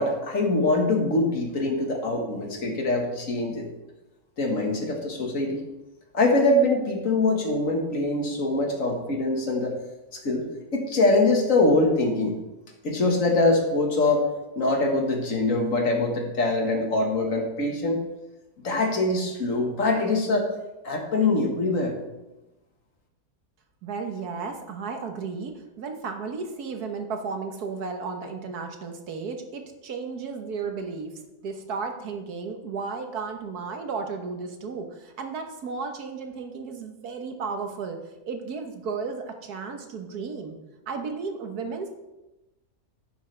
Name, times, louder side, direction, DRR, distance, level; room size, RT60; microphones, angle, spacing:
voice 1, 0.0-3.7 4.4-5.6 6.1-9.8 10.1-10.5 10.7-12.4 12.8-14.3 14.6-18.0 18.6-20.5 20.8-21.9, left 2 dB, 60° left, 2 dB, 2.0 m, -23 dB
voice 2, 23.8-31.1 31.4-38.0 38.2-40.6 40.9-41.9, right 4 dB, 85° right, 5 dB, 1.7 m, -34 dB
11.0 x 10.0 x 3.4 m, 1.0 s
omnidirectional pair, 1.6 m